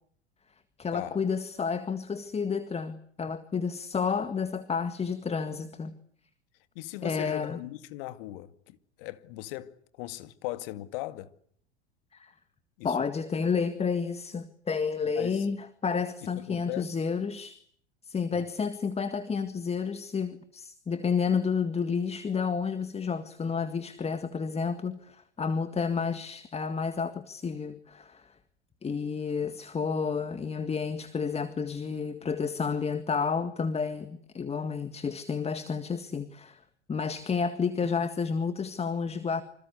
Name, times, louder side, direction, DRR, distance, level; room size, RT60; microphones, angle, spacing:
voice 1, 0.8-5.9 7.0-7.6 12.1-12.3 12.8-17.6 18.1-28.3 28.8-36.6 36.9-39.4, left 5 dB, 20° left, 1.8 m, -30 dB
voice 2, 6.8-11.3 12.8-13.0 15.2-15.5 16.2-17.0 18.3-18.5, left 16 dB, 55° left, 2.2 m, -39 dB
27.0 x 26.5 x 8.3 m
figure-of-eight pair, 80°, 33 cm